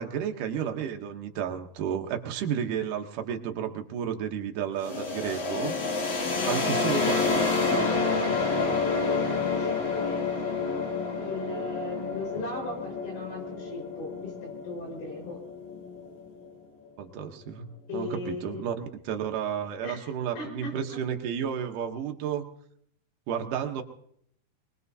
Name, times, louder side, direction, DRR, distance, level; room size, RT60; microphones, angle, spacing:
voice 1, 0.0-5.7 6.4-7.2 7.7-7.9 8.6-8.8 12.3-12.4 17.0-17.7 17.9-22.5 23.3-23.8, right 8 dB, 75° right, 4 dB, 1.9 m, -32 dB
sound 1, 4.8-16.5, left 4 dB, 50° left, 3.3 m, -29 dB
voice 2, 6.3-7.4 7.9-10.7 11.1-15.4 17.9-18.6 19.8-21.0, left 2 dB, 75° left, 0 dB, 6.9 m, -38 dB
24.0 x 20.0 x 2.7 m, 0.69 s
omnidirectional pair, 5.1 m